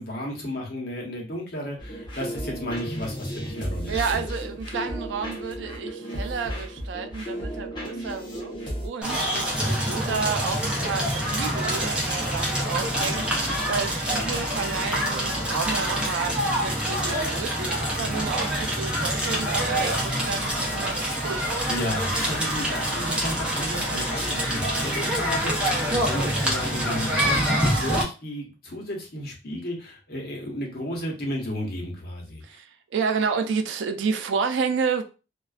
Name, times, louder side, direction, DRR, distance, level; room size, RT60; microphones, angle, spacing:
voice 1, 0.0-4.2 21.7-32.4, equal, 55° left, 0.9 m, -33 dB
sound 1, 1.8-8.9, equal, 25° left, 0.7 m, -34 dB
voice 2, 3.9-8.5 8.8-13.3 13.7-21.7 32.4-35.0, right 5 dB, 90° right, 0.4 m, -30 dB
Crackle, 9.0-28.0, equal, 5° right, 0.6 m, -26 dB
2.4 x 2.2 x 2.3 m
head